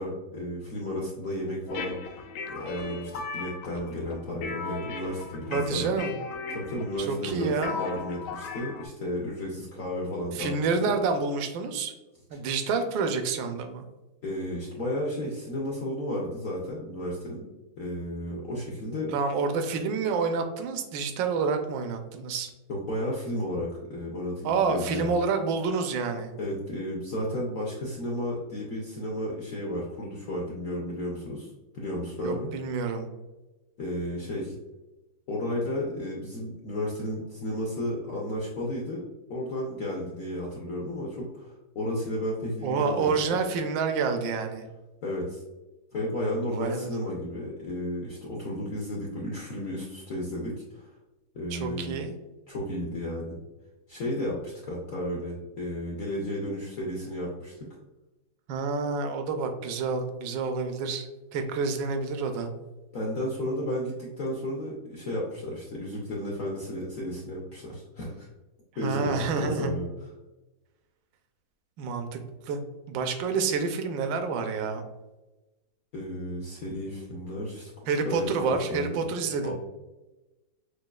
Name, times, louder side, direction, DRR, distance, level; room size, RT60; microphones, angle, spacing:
voice 1, 0.0-2.0 2.5-5.9 6.5-10.5 14.2-17.5 17.8-19.1 22.9-25.2 26.4-31.5 31.7-32.5 33.8-34.5 35.3-39.0 39.3-43.4 45.0-45.4 45.9-50.9 51.3-51.9 52.5-53.4 53.9-57.5 62.9-68.3 68.8-69.9 75.9-79.0 79.4-79.5, left 1 dB, 70° left, -3 dB, 0.7 m, -33 dB
sound 1, 1.7-8.9, left 4 dB, 90° left, 1.4 m, -37 dB
voice 2, 5.5-6.1 7.0-7.8 10.3-11.9 12.3-13.9 19.1-22.5 24.4-26.3 32.2-33.1 42.6-44.7 46.6-46.9 51.5-52.1 58.5-61.1 61.3-62.5 68.8-69.7 71.8-72.2 72.5-72.6 72.9-74.8 77.9-79.5, right 4 dB, 75° right, 6 dB, 1.2 m, -28 dB
6.2 x 2.3 x 2.3 m, 1.1 s
omnidirectional pair, 2.2 m